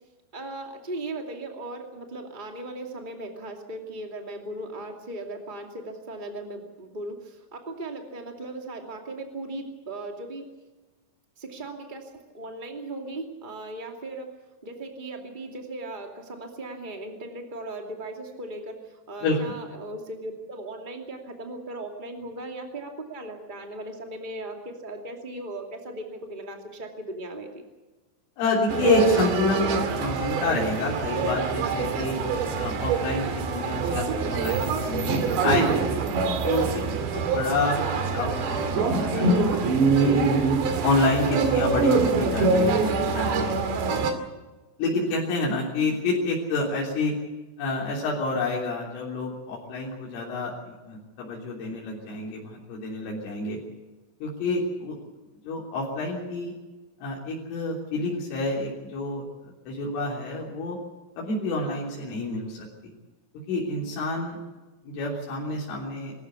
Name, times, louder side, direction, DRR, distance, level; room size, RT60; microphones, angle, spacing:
voice 1, 0.3-10.5 11.4-14.3 14.6-27.6, right 2 dB, 35° right, 3 dB, 0.7 m, -37 dB
voice 2, 28.4-32.2 32.6-35.9 36.4-39.5 40.0-40.3 40.8-43.6 44.8-47.2 47.6-53.6 54.2-55.0 55.5-56.5 57.0-60.8 61.2-62.7 63.5-64.4 64.8-66.1, left 2 dB, 80° left, -3 dB, 5.9 m, -28 dB
sound 1, 28.7-44.1, right 4 dB, 65° right, 4.3 m, -24 dB
25.0 x 14.0 x 8.3 m, 1.2 s
omnidirectional pair, 5.7 m